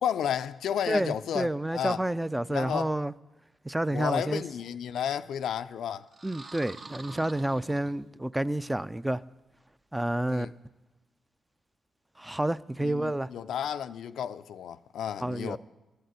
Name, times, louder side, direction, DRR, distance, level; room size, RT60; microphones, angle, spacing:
voice 1, 0.0-2.0 2.5-2.9 3.9-6.1 10.3-10.5 12.8-15.6, left 9 dB, 80° left, 0.4 m, -32 dB
voice 2, 0.9-3.1 3.6-4.4 6.2-9.2 9.9-10.5 12.2-13.3 15.2-15.6, right 1 dB, 10° right, 0.4 m, -29 dB
sound 1, 6.1-8.4, right 3 dB, 50° right, 1.0 m, -46 dB
11.0 x 6.6 x 9.4 m
supercardioid pair, 55°, 0 cm